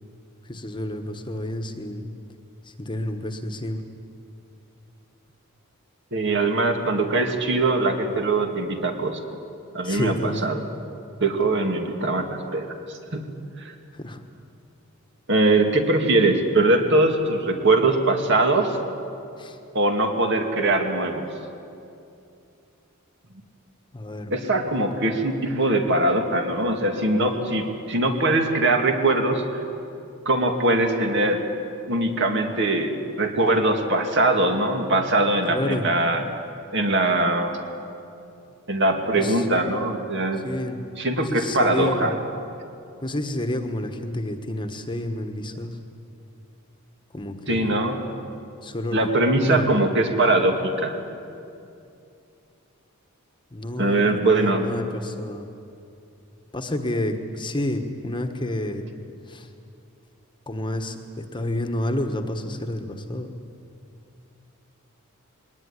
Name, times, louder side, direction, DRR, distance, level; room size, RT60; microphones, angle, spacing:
voice 1, 0.4-2.1 2.6-3.8 9.8-10.4 13.9-14.2 19.4-19.6 23.9-24.3 35.5-35.9 39.1-39.5 40.4-40.8 41.2-42.2 43.0-45.8 47.1-47.8 48.6-49.1 49.4-49.7 53.5-55.5 56.5-58.9 59.3-59.5 60.5-63.3, left 1 dB, 20° left, 6 dB, 1.3 m, -29 dB
voice 2, 6.1-9.2 9.7-10.6 11.2-12.7 13.1-13.2 13.6-13.7 15.3-18.8 19.7-21.2 24.3-29.6 30.3-31.4 31.9-36.3 36.7-37.5 38.7-40.5 41.0-42.1 47.5-48.0 48.9-51.0 53.8-54.6, right 2 dB, 55° right, 4 dB, 2.4 m, -22 dB
21.5 x 19.0 x 9.9 m, 2.6 s
head